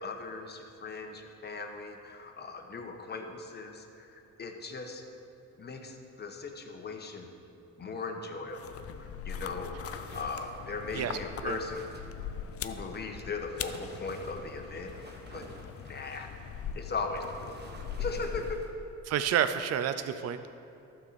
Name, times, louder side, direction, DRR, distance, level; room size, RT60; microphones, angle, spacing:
voice 1, 0.0-5.0 5.6-7.3 7.8-11.9 12.6-14.9 15.3-15.5 15.8-16.3 16.7-17.6 18.0-18.6, left 4 dB, 35° left, 3 dB, 1.1 m, -38 dB
sound 1, 8.5-18.9, left 8 dB, 50° left, 0.5 m, -41 dB
sound 2, 9.8-13.0 13.4-18.7, right 2 dB, 35° right, 1.2 m, -51 dB
voice 2, 19.1-20.5, right 9 dB, 55° right, 10 dB, 0.5 m, -29 dB
12.0 x 4.3 x 6.8 m, 2.7 s
cardioid pair, 90°, 30 cm